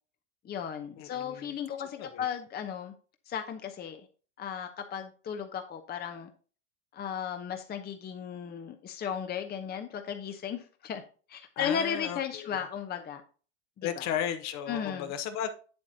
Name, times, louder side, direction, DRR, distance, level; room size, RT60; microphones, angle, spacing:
voice 1, 0.4-2.9 3.3-4.0 4.4-6.3 6.9-11.0 11.3-13.2 13.8-14.0 14.7-15.1, left 8 dB, 25° left, 1.0 m, -35 dB
voice 2, 1.0-1.6 2.0-2.3 11.6-12.6 13.8-15.5, left 9 dB, 45° left, 1.2 m, -35 dB
8.6 x 8.0 x 2.8 m
hypercardioid pair, 85°, 37 cm